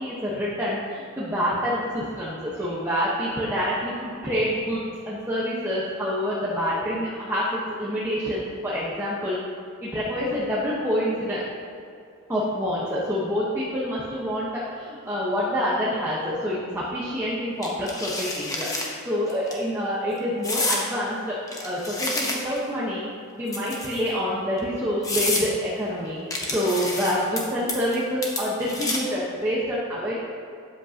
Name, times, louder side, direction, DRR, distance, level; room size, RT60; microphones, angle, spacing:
voice 1, 0.0-9.4 9.8-11.4 12.3-21.4 21.6-23.1 23.3-26.2 26.4-30.1, equal, 10° right, -8 dB, 1.0 m, -27 dB
sound 1, 17.6-18.9 19.3-19.5 20.4-20.8 21.5-22.7 23.5-24.1 24.6-24.7 25.0-25.5 26.3-27.4 27.7-28.0 28.2-29.2, left 2 dB, 15° left, 0.9 m, -28 dB
12.5 x 8.1 x 2.8 m, 2.5 s
head